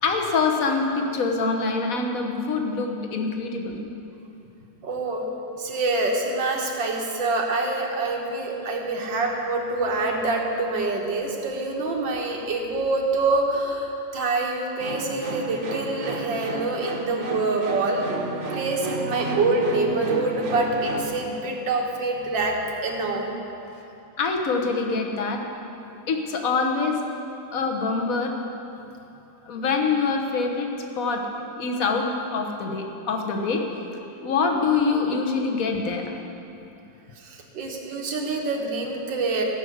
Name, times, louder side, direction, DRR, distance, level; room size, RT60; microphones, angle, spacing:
voice 1, 0.0-3.8 24.2-25.4 26.1-27.0 27.5-28.4 29.5-30.7 31.0-31.2 31.6-33.6 34.2-36.1, left 4 dB, 50° left, 2 dB, 1.4 m, -25 dB
voice 2, 4.8-5.3 5.6-18.1 18.5-23.3 37.5-39.4, right 3 dB, 80° right, 0 dB, 2.1 m, -26 dB
sound 1, 14.8-21.2, right 3 dB, 45° right, 1.2 m, -33 dB
14.5 x 6.4 x 7.9 m, 2.9 s
omnidirectional pair, 2.0 m